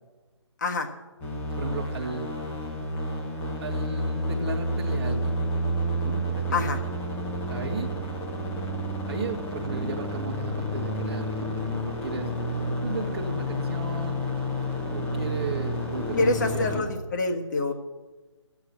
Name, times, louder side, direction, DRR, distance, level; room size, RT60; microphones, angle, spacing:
voice 1, 0.6-0.9 6.5-6.8 16.1-17.7, left 3 dB, 40° left, 4 dB, 1.6 m, -26 dB
sound 1, 1.2-16.8, equal, 10° left, 1.1 m, -30 dB
voice 2, 1.6-2.3 3.6-5.4 6.0-6.8 7.5-7.9 8.8-14.2 14.9-16.9, right 4 dB, 25° right, -4 dB, 1.2 m, -35 dB
14.0 x 8.4 x 8.7 m, 1.2 s
figure-of-eight pair, 150°, 16 cm